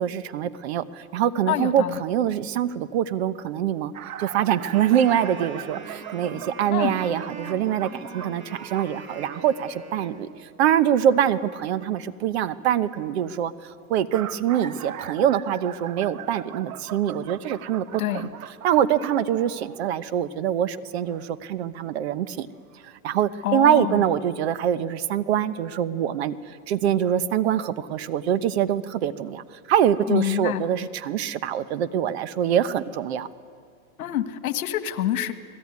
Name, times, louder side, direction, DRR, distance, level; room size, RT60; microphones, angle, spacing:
voice 1, 0.0-3.9 4.2-10.3 10.6-13.5 13.9-18.3 18.6-22.5 23.0-26.3 26.7-33.3, right 10 dB, 50° right, 14 dB, 1.0 m, -24 dB
voice 2, 1.5-2.0 6.7-7.0 18.0-18.3 23.4-24.0 30.1-30.6 34.0-35.3, left 12 dB, 75° left, 11 dB, 1.7 m, -26 dB
sound 1, 3.9-9.0 13.8-20.0 21.1-21.2 22.3-22.4 22.7-22.8, right 11 dB, 80° right, 1.3 m, -39 dB
Wind instrument woodwind instrument, 4.5-10.4, right 4 dB, 30° right, 2.4 m, -41 dB
29.0 x 19.5 x 9.5 m, 2.2 s
supercardioid pair, 170°, 42 cm